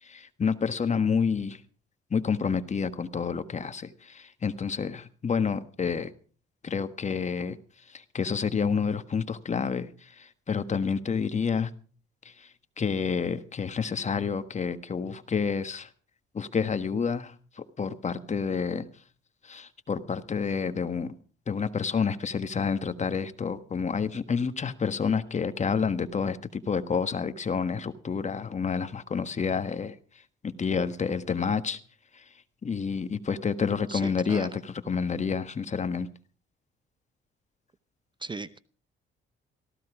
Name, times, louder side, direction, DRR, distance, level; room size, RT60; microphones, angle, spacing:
voice 1, 0.0-1.6 2.1-6.1 6.6-7.6 7.9-11.7 12.2-12.5 12.8-15.9 16.3-18.9 19.4-21.1 21.5-29.9 30.4-31.8 32.1-32.2 32.6-36.1, left 6 dB, 35° left, 11 dB, 1.5 m, -29 dB
voice 2, 33.9-34.5 38.2-38.6, right 3 dB, 25° right, 16 dB, 0.7 m, -37 dB
18.0 x 15.5 x 4.9 m, 0.41 s
cardioid pair, 90°, 20 cm